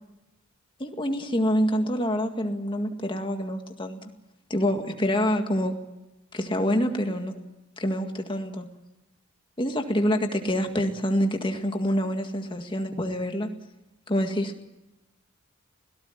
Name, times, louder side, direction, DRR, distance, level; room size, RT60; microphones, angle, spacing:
voice 1, 0.8-4.1 4.5-5.8 6.3-7.4 7.8-8.7 9.6-13.5 14.1-14.5, equal, 25° left, 5 dB, 1.9 m, -26 dB
21.0 x 17.5 x 9.7 m, 0.99 s
head